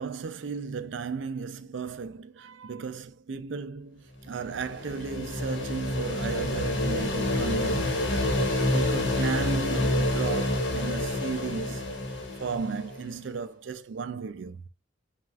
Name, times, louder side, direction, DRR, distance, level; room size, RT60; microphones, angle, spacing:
voice 1, 0.0-8.1 8.6-11.9 12.4-14.6, right 5 dB, 75° right, 0.4 m, -35 dB
sound 1, 4.3-13.0, left 1 dB, 75° left, 1.1 m, -28 dB
5.7 x 2.4 x 2.4 m
head